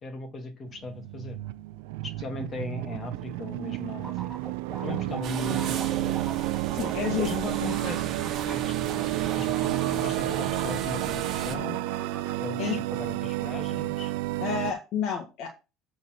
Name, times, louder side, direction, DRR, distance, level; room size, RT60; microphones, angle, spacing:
voice 1, 0.0-1.4 2.0-4.3 4.8-5.8 7.1-11.8 12.4-14.1, left 3 dB, 30° left, 6 dB, 1.9 m, -38 dB
sound 1, 0.7-14.7, right 16 dB, 90° right, 0.4 m, -31 dB
sound 2, 4.0-11.1 11.3-12.3, right 2 dB, 5° right, 2.2 m, -42 dB
sound 3, 5.2-11.6, right 8 dB, 50° right, 1.4 m, -37 dB
voice 2, 6.7-7.3 12.6-12.7 14.4-15.5, left 7 dB, 60° left, 2 dB, 1.7 m, -29 dB
7.8 x 4.2 x 6.4 m, 0.29 s
cardioid pair, 125°, 0 cm